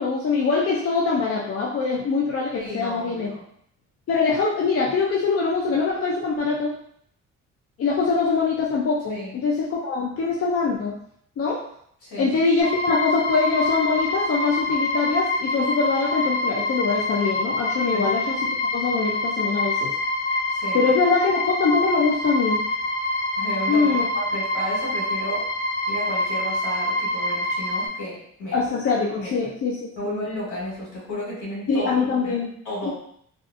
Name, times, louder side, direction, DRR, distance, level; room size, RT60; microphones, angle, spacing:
voice 1, 0.0-3.3 4.1-6.7 7.8-10.9 11.4-11.6 12.2-19.9 20.7-22.6 23.7-24.0 28.5-30.2 31.7-32.5 32.9-33.0, left 4 dB, 50° left, -3 dB, 0.5 m, -23 dB
voice 2, 2.5-3.5 9.1-9.4 12.0-12.3 17.9-18.1 20.5-20.8 23.4-25.6 25.9-28.6 29.2-29.4 30.0-32.4 32.6-32.9, equal, 80° left, -6 dB, 1.4 m, -33 dB
sound 1, 12.6-27.9, left 2 dB, ahead, 1.4 m, -26 dB
2.5 x 2.4 x 2.5 m, 0.67 s
cardioid pair, 90°, 30 cm